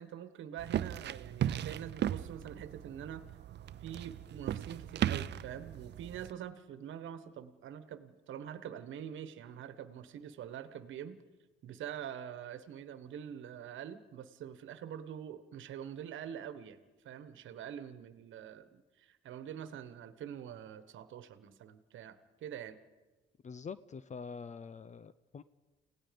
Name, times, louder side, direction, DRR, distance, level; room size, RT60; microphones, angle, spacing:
voice 1, 0.0-3.2 3.8-11.2 11.6-22.8, right 9 dB, 75° right, 12 dB, 1.3 m, -45 dB
sound 1, 0.6-6.3, right 11 dB, 60° right, 0.6 m, -37 dB
voice 2, 23.4-25.4, left 5 dB, 35° left, 16 dB, 0.6 m, -45 dB
30.0 x 17.5 x 5.2 m, 1.2 s
cardioid pair, 90°, 20 cm